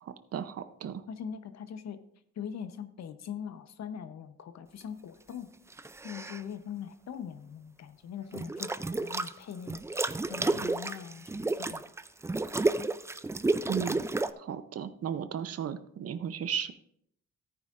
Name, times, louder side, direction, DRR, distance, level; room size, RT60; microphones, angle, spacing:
voice 1, 0.0-1.0 13.7-14.0 14.4-16.7, right 8 dB, 50° right, 12 dB, 0.7 m, -35 dB
voice 2, 1.1-2.0 2.4-5.5 6.0-11.8, left 8 dB, 60° left, 10 dB, 0.9 m, -42 dB
sound 1, 5.7-6.4 8.3-9.3 9.7-14.3, right 2 dB, 10° right, 0.3 m, -31 dB
14.0 x 9.5 x 2.5 m, 0.71 s
cardioid pair, 90°, 30 cm